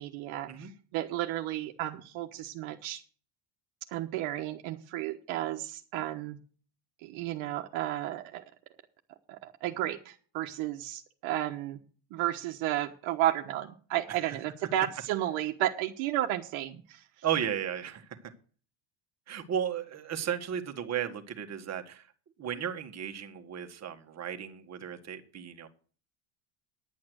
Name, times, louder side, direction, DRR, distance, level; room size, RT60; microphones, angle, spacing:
voice 1, 0.0-3.0 3.9-6.4 7.0-8.4 9.3-11.8 12.1-17.0, right 13 dB, 70° right, 4 dB, 1.3 m, -33 dB
voice 2, 17.2-18.2 19.3-22.1 22.4-25.7, right 9 dB, 30° right, 6 dB, 1.7 m, -34 dB
10.5 x 8.7 x 6.4 m, 0.41 s
cardioid pair, 145°, 49 cm